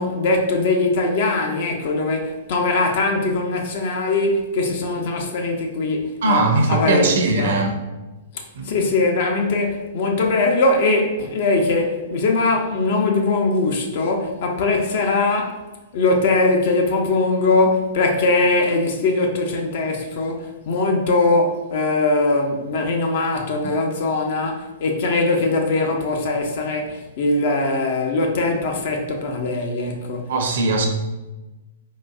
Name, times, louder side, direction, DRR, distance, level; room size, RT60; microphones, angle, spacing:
voice 1, 0.0-7.6 8.3-15.6 15.9-30.3, left 2 dB, 55° left, 0.6 m, -21 dB
voice 2, 6.2-7.7 8.5-8.7 23.6-23.7 30.3-30.9, right 2 dB, 65° right, 0.6 m, -20 dB
3.9 x 2.6 x 2.3 m
figure-of-eight pair, 110°, 0 cm